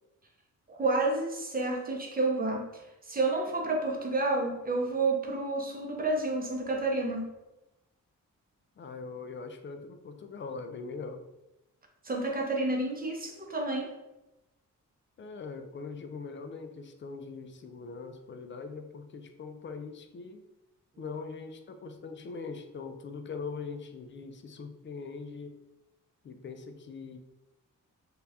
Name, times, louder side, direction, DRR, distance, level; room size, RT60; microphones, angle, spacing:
voice 1, 0.7-2.8 3.1-7.2 12.0-13.9, right 2 dB, 30° right, 1 dB, 0.6 m, -30 dB
voice 2, 8.8-11.2 15.2-20.4 21.0-25.6 26.2-27.2, left 4 dB, 35° left, 7 dB, 0.4 m, -41 dB
2.7 x 2.3 x 3.3 m, 0.96 s
cardioid pair, 90°, 32 cm